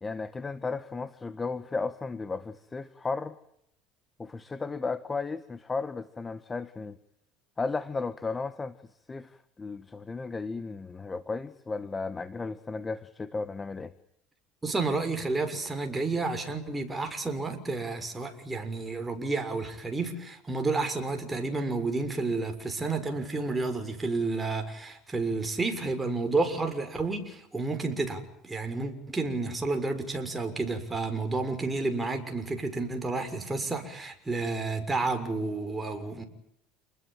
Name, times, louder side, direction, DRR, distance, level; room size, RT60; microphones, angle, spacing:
voice 1, 0.0-3.4 4.2-7.0 7.6-8.7 9.1-13.9, left 4 dB, 20° left, 1.4 m, -34 dB
voice 2, 14.6-36.2, right 3 dB, 15° right, 6.5 m, -31 dB
30.0 x 21.0 x 9.2 m
supercardioid pair, 120°, 0 cm